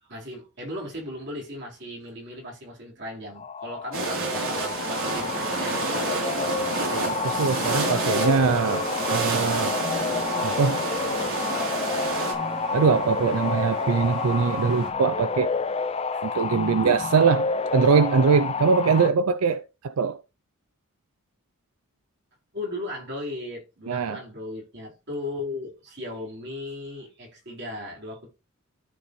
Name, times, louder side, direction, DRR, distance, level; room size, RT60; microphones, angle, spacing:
voice 1, 0.0-6.6 16.1-16.3 22.5-28.3, left 1 dB, 55° right, 4.2 m, -37 dB
sound 1, 3.4-19.1, left 4 dB, 30° left, 0.4 m, -29 dB
sound 2, 3.9-12.3, right 3 dB, 70° right, 3.3 m, -30 dB
sound 3, 4.9-14.9, right 4 dB, 25° right, 2.4 m, -36 dB
voice 2, 6.8-10.1 10.4-10.8 12.7-15.5 16.2-20.2 23.9-24.2, right 5 dB, 85° right, 0.5 m, -23 dB
13.5 x 4.9 x 3.2 m
head